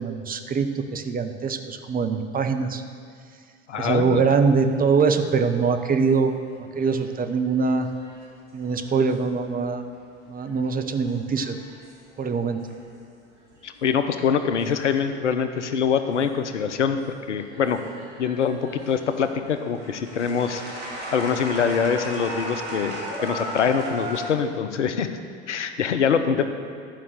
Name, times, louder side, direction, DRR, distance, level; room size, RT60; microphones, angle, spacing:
voice 1, 0.0-2.8 3.8-6.4 6.8-7.9 8.5-9.8 10.3-11.6 12.2-12.6, right 5 dB, 25° right, 7 dB, 0.8 m, -23 dB
voice 2, 3.7-4.2 13.6-17.8 18.2-20.6 21.1-25.1 25.5-26.5, left 7 dB, 85° left, 9 dB, 0.7 m, -24 dB
sound 1, 4.5-9.8 10.2-13.0 13.3-13.8 14.4-17.0 17.4-24.3, right 1 dB, 85° right, 2.1 m, -38 dB
11.5 x 5.5 x 6.5 m, 2.2 s
figure-of-eight pair, 70°, 35 cm